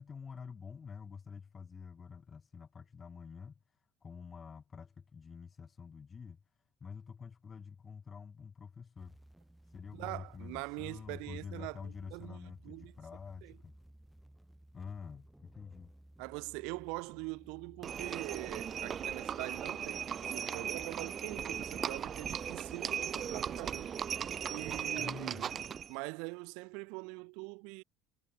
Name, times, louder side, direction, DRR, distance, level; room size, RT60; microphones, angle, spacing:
voice 1, 0.0-3.5 4.0-6.4 6.8-9.1 9.7-13.7 14.7-15.9 25.0-25.4, left 6 dB, 30° left, 1.3 m, -47 dB
sound 1, 9.0-24.9, right 1 dB, 5° right, 1.4 m, -58 dB
voice 2, 9.9-13.0 13.4-13.5 16.2-23.9 24.5-25.6 25.9-27.8, right 31 dB, 75° right, 0.8 m, -43 dB
Livestock farm animals working animals, 17.8-25.9, right 8 dB, 40° right, 0.3 m, -38 dB
supercardioid pair, 90°, 0 cm